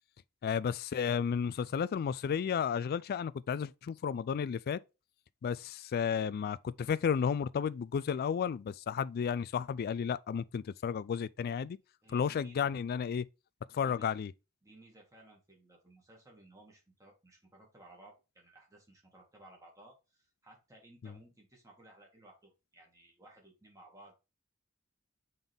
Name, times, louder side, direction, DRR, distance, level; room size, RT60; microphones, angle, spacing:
voice 1, 0.4-4.8 5.4-11.8 12.1-13.3 13.7-14.3 21.0-21.1, left 7 dB, 45° left, 0.3 m, -33 dB
voice 2, 12.0-13.2 13.8-14.1 14.6-24.2, right 1 dB, 15° right, 2.0 m, -58 dB
7.0 x 4.0 x 3.5 m
head